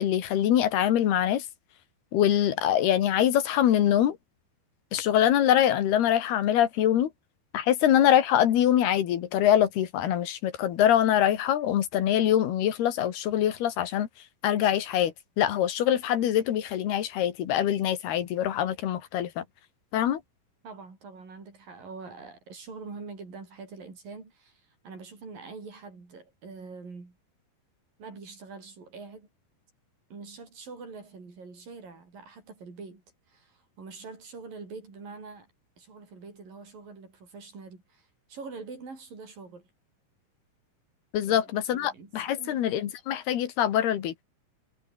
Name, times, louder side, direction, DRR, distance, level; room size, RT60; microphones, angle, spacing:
voice 1, 0.0-1.5 2.1-4.2 4.9-7.1 7.5-14.1 14.4-19.4 19.9-20.2 41.1-44.1, left 11 dB, 80° left, 3.9 m, -24 dB
voice 2, 20.6-27.2 28.0-29.3 30.1-33.0 33.3-35.5 35.8-39.7 41.2-42.7, right 4 dB, 60° right, 8.2 m, -44 dB
omnidirectional pair, 4.5 m